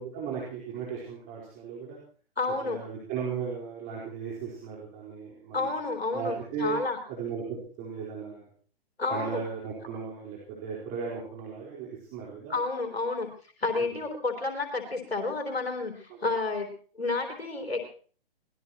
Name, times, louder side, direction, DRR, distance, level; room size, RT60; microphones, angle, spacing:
voice 1, 0.0-2.0 2.6-5.7 6.1-6.8 7.1-8.5 9.1-12.5 13.8-13.9 16.1-16.2, right 6 dB, 25° right, -4 dB, 4.4 m, -36 dB
voice 2, 2.4-2.8 5.5-7.0 9.0-9.4 12.5-13.3 13.6-16.7 17.0-17.9, left 3 dB, 85° left, 3 dB, 3.7 m, -30 dB
24.0 x 19.5 x 3.0 m, 0.43 s
figure-of-eight pair, 130°, 30 cm